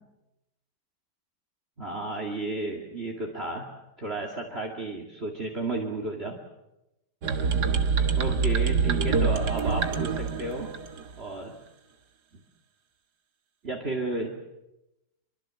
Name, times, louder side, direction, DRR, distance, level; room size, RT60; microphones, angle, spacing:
voice 1, 1.8-3.7 4.0-6.4 8.2-10.7 11.2-11.5 13.6-14.3, right 2 dB, 35° right, 2 dB, 2.5 m, -33 dB
sound 1, 7.2-11.2, right 5 dB, 65° right, 2.0 m, -25 dB
26.0 x 23.5 x 7.6 m, 0.94 s
omnidirectional pair, 2.0 m